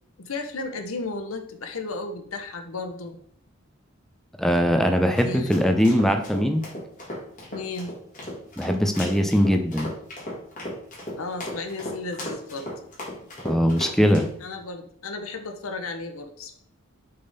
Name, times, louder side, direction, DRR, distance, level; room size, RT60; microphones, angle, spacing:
voice 1, 0.2-3.2 5.2-5.7 7.5-7.9 11.2-12.7 14.4-16.6, left 3 dB, 85° left, 7 dB, 0.9 m, -34 dB
voice 2, 4.4-6.6 8.6-9.9 13.4-14.3, equal, ahead, 5 dB, 0.5 m, -21 dB
sound 1, 4.9-14.3, left 1 dB, 40° left, 2.1 m, -36 dB
6.7 x 3.6 x 4.0 m, 0.63 s
head